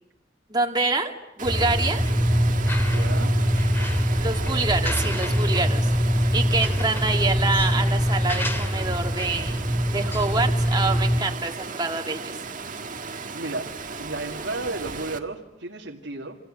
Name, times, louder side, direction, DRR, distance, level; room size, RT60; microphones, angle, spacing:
voice 1, 0.5-1.1 1.4-2.0 4.2-5.9 6.3-9.6 9.9-12.4, right 3 dB, 20° right, 2 dB, 2.2 m, -26 dB
sound 1, 1.4-11.2, equal, 10° left, 2.6 m, -23 dB
Water, 1.4-15.2, right 4 dB, 45° right, 1.8 m, -36 dB
voice 2, 2.8-3.3 13.3-13.7 14.0-16.4, right 2 dB, 75° right, -1 dB, 2.3 m, -33 dB
28.0 x 27.0 x 7.8 m, 0.96 s
head